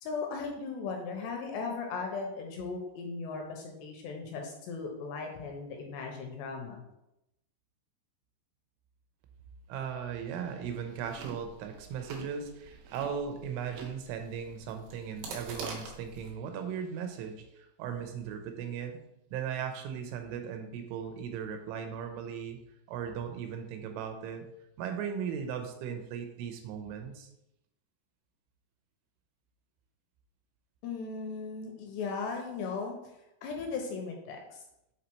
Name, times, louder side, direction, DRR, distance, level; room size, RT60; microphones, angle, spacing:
voice 1, 0.0-6.8 30.8-33.1 33.4-34.6, left 4 dB, 80° left, 2 dB, 2.6 m, -37 dB
voice 2, 9.7-19.0 19.3-22.6 22.9-24.5 24.8-27.3, right 7 dB, 85° right, 5 dB, 3.2 m, -37 dB
Chewing mastication, 10.9-16.3, right 4 dB, 65° right, 2.3 m, -45 dB
7.3 x 4.0 x 4.5 m, 0.87 s
omnidirectional pair, 5.5 m